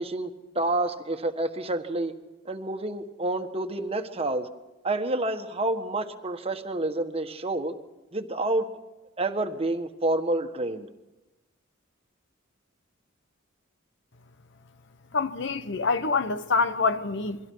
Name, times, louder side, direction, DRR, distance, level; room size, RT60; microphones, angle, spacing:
voice 1, 0.0-2.2 2.4-4.5 4.8-7.7 8.1-8.7 9.2-10.9, right 2 dB, 30° right, 1.5 m, -28 dB
voice 2, 15.1-17.4, left 4 dB, 65° left, 1.0 m, -26 dB
29.0 x 23.0 x 4.7 m
head